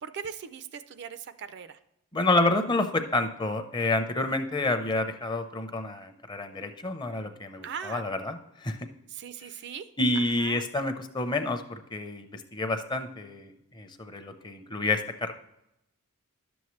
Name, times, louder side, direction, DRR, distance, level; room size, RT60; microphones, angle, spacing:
voice 1, 0.0-1.8 7.6-8.0 9.1-9.9 10.2-10.6, right 7 dB, 50° right, 12 dB, 0.4 m, -39 dB
voice 2, 2.1-8.8 10.0-15.3, left 2 dB, 20° left, 8 dB, 0.6 m, -29 dB
10.5 x 7.1 x 3.1 m, 0.85 s
head